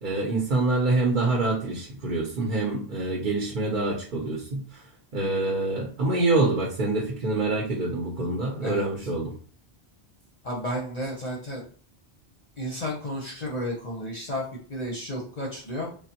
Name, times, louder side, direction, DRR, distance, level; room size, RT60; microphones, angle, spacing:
voice 1, 0.0-4.8 5.1-9.4, right 2 dB, 55° right, -1 dB, 0.8 m, -26 dB
voice 2, 10.4-11.6 12.6-14.4 14.7-15.9, equal, 45° left, -3 dB, 0.7 m, -32 dB
3.3 x 2.1 x 2.8 m, 0.43 s
omnidirectional pair, 1.1 m